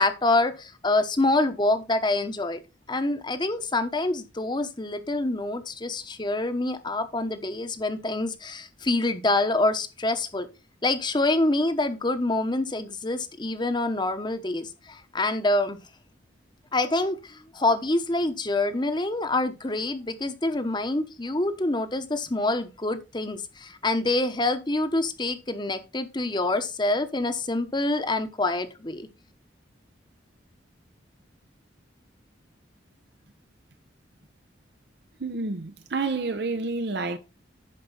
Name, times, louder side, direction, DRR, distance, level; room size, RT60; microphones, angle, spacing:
voice 1, 0.0-2.6 2.9-10.5 10.8-15.8 16.7-29.1, left 2 dB, 25° left, 1.0 m, -26 dB
voice 2, 35.2-37.2, right 3 dB, 55° right, 0.8 m, -29 dB
11.5 x 5.0 x 4.1 m
head